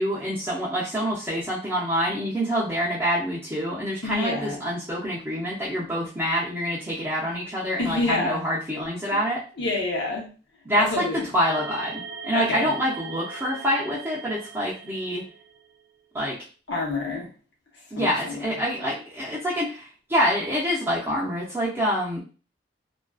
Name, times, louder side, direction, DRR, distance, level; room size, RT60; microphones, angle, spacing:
voice 1, 0.0-9.4 10.6-15.2 16.1-16.4 17.9-22.2, equal, 15° right, -7 dB, 0.5 m, -26 dB
voice 2, 4.0-4.6 7.8-8.4 9.6-10.3 10.7-11.2 12.3-12.6 16.7-17.3 17.9-18.4, left 3 dB, 85° left, -2 dB, 0.8 m, -27 dB
sound 1, 11.4-15.7, right 5 dB, 75° right, 0.7 m, -40 dB
2.4 x 2.2 x 2.3 m, 0.36 s
head